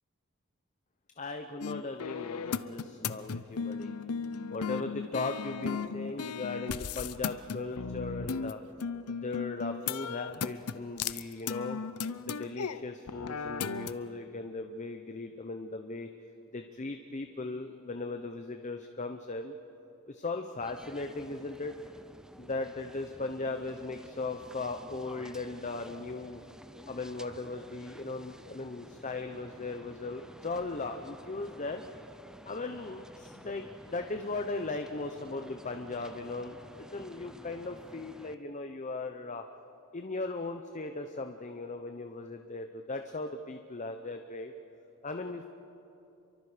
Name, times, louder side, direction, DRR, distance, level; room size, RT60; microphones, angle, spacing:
voice 1, 1.2-3.9 4.5-8.6 9.1-11.8 12.3-16.1 16.5-19.5 20.1-21.7 22.4-26.4 26.8-31.8 32.4-39.4 39.9-44.5 45.0-45.5, left 3 dB, 35° left, 6 dB, 0.8 m, -38 dB
sound 1, 1.6-8.5 8.8-12.8 13.1-13.9, left 6 dB, 85° left, 0.7 m, -36 dB
sound 2, 20.6-38.3, equal, 5° right, 0.5 m, -51 dB
30.0 x 23.5 x 5.0 m, 2.9 s
head